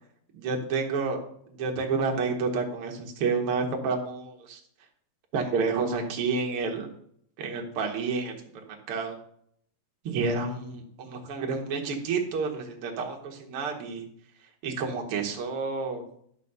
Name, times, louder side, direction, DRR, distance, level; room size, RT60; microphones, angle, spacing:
voice 1, 0.3-1.2 1.5-4.6 5.3-6.9 7.4-8.4 8.7-9.2 10.0-14.0 14.6-16.0, right 4 dB, 60° right, 2 dB, 1.5 m, -29 dB
12.0 x 4.2 x 6.7 m, 0.67 s
omnidirectional pair, 4.4 m